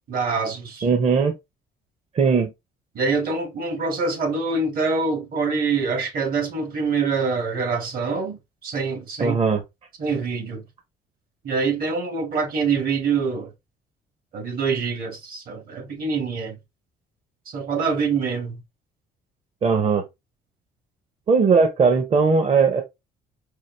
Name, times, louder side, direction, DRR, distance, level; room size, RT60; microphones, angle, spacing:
voice 1, 0.1-0.9 3.0-9.4 10.0-10.6 11.4-13.5 14.3-16.6 17.5-18.6, right 4 dB, 60° right, 1.7 m, -25 dB
voice 2, 0.8-1.3 2.1-2.5 9.2-9.6 19.6-20.1 21.3-22.8, right 5 dB, 35° right, 0.7 m, -18 dB
4.6 x 2.5 x 3.2 m
cardioid pair, 110°, 17 cm